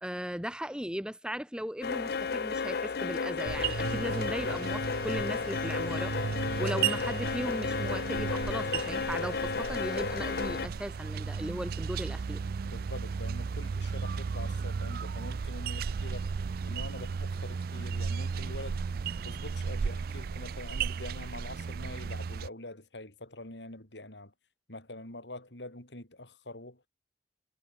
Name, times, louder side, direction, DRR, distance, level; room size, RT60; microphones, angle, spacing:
voice 1, 0.0-6.1 6.6-12.4, equal, 5° right, 2.1 m, -37 dB
sound 1, 1.8-10.7, left 5 dB, 60° left, 0.6 m, -33 dB
sound 2, 3.4-22.5, right 5 dB, 55° right, 0.4 m, -35 dB
voice 2, 12.6-16.3 16.7-18.8 19.2-24.3 24.7-26.9, left 2 dB, 85° left, 7.9 m, -45 dB
head